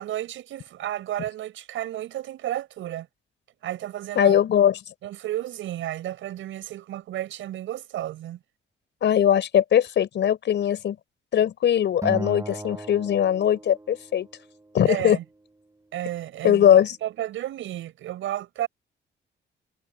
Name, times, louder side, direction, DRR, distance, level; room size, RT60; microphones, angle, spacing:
voice 1, 0.0-3.1 3.6-4.3 5.0-8.4 14.9-15.2 15.9-18.7, right 13 dB, 80° right, 6.1 m, -32 dB
voice 2, 4.1-4.8 9.0-11.0 11.3-14.3 14.7-15.2 16.4-16.9, left 10 dB, 65° left, 4.7 m, -20 dB
Acoustic guitar, 12.0-14.4, right 2 dB, 15° right, 7.9 m, -36 dB
cardioid pair, 90°, 20 cm